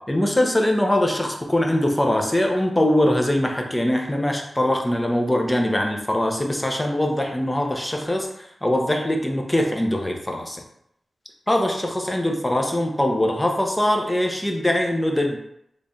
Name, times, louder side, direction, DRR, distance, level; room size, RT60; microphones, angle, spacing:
voice 1, 0.1-10.6 11.5-15.4, left 1 dB, 15° left, 2 dB, 0.6 m, -22 dB
3.2 x 2.4 x 4.0 m, 0.75 s
wide cardioid pair, 65°, 0 cm